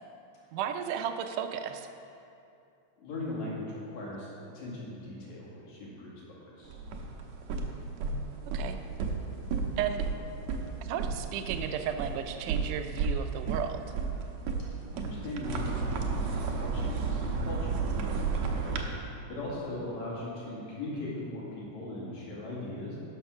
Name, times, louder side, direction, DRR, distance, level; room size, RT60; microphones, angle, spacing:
voice 1, 0.5-1.9 8.5-8.8 9.8-10.1 10.8-13.8, right 8 dB, 90° right, 7 dB, 2.2 m, -34 dB
voice 2, 3.0-6.8 14.9-18.8 19.3-23.0, left 2 dB, 65° left, -6 dB, 3.4 m, -39 dB
sound 1, 6.6-18.8, right 4 dB, 75° right, 2.0 m, -33 dB
11.0 x 6.3 x 6.0 m, 2.6 s
omnidirectional pair, 3.5 m